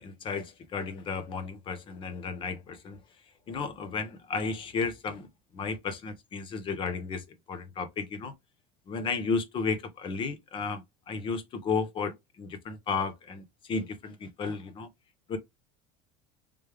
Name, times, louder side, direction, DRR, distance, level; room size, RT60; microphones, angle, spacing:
voice 1, 0.0-3.0 3.5-5.3 5.5-8.3 8.9-13.4 13.7-14.9 15.3-15.4, left 4 dB, 35° left, 0.9 m, -33 dB
3.4 x 3.2 x 3.4 m
cardioid pair, 135°, 14 cm